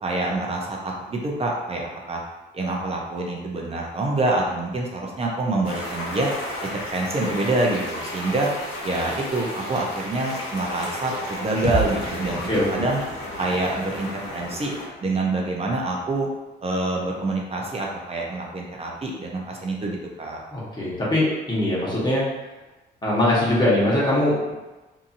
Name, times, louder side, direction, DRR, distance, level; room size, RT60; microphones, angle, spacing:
voice 1, 0.0-2.2 2.5-6.3 6.7-8.5 8.8-13.0 13.4-14.7 15.0-16.3 16.6-20.4, right 2 dB, 30° right, -1 dB, 0.6 m, -26 dB
sound 1, 5.6-14.9, left 1 dB, 75° left, 1.0 m, -34 dB
sound 2, 11.6-15.5, right 1 dB, 60° left, 0.7 m, -33 dB
voice 2, 20.5-22.3 23.0-24.5, left 1 dB, 20° left, -7 dB, 1.2 m, -21 dB
2.8 x 2.6 x 2.5 m, 1.1 s
cardioid pair, 90°, 20 cm